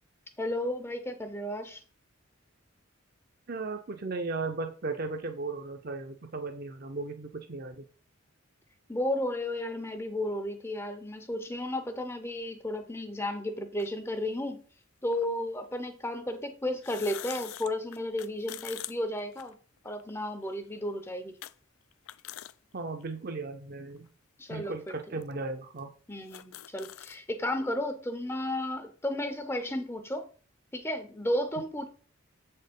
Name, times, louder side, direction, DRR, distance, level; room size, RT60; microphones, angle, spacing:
voice 1, 0.4-1.8 8.9-14.6 15.0-19.6 19.8-21.4 24.4-24.9 26.1-30.3 30.7-31.9, left 1 dB, 10° left, 8 dB, 0.5 m, -33 dB
voice 2, 3.5-7.8 22.7-24.1 24.5-25.9, right 3 dB, 45° right, 5 dB, 0.6 m, -36 dB
sound 1, 13.8-13.9 15.1-15.3 16.7-20.0 20.4-20.5 21.4-21.5 21.9-22.5 23.0-23.1 24.0-24.1 24.9-25.0 25.2-25.3 25.8-25.9 26.1-27.2, left 14 dB, 80° left, 0.4 m, -44 dB
7.0 x 4.3 x 5.2 m, 0.42 s
head